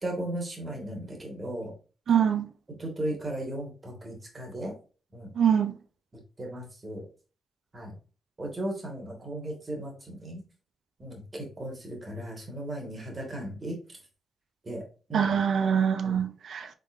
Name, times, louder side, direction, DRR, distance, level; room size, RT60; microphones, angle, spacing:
voice 1, 0.0-1.7 2.8-4.7 5.1-5.3 6.4-7.1 7.7-7.9 8.4-10.4 11.0-13.8 14.6-14.8 15.1-15.3 16.0-16.2, right 1 dB, 30° right, 1.5 m, -36 dB
voice 2, 2.1-2.5 5.4-5.7 15.1-16.7, right 8 dB, 65° right, 0.4 m, -24 dB
3.7 x 3.6 x 2.4 m
cardioid pair, 85°, 0 cm